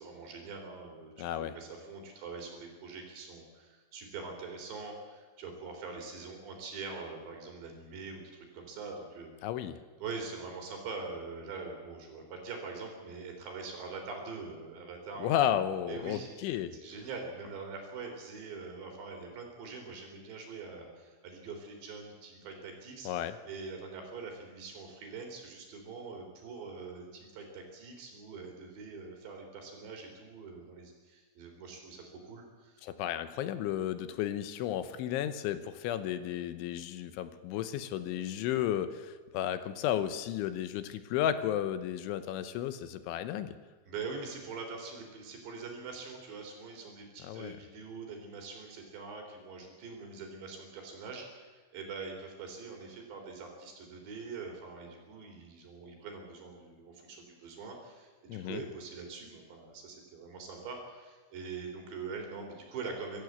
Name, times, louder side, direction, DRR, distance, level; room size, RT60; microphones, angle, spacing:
voice 1, 0.0-9.3 10.0-15.3 15.9-16.3 16.8-23.1 23.5-32.8 43.8-63.2, right 4 dB, 65° right, 2 dB, 5.7 m, -43 dB
voice 2, 1.2-1.5 9.4-9.8 15.2-16.8 23.1-23.4 32.8-43.6 47.2-47.6 58.3-58.6, left 11 dB, 80° left, 11 dB, 3.3 m, -33 dB
24.0 x 14.0 x 8.0 m, 1.4 s
omnidirectional pair, 5.5 m